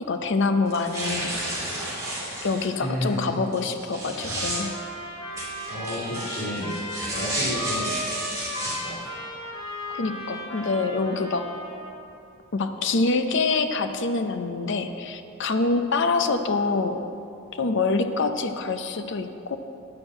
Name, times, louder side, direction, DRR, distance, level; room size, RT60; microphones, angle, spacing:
voice 1, 0.0-1.4 2.4-4.7 9.9-11.5 12.5-17.0 17.6-19.6, left 3 dB, 60° left, 8 dB, 0.6 m, -25 dB
sound 1, 0.7-2.7 3.5-4.6 5.4-8.7, right 1 dB, 15° right, 2.5 m, -32 dB
voice 2, 2.8-3.3 5.7-6.7 7.1-7.9 8.4-9.0, equal, 80° left, -9 dB, 2.7 m, -31 dB
sound 2, 4.2-11.9, left 1 dB, 25° left, 1.6 m, -35 dB
9.6 x 6.3 x 7.5 m, 2.7 s
head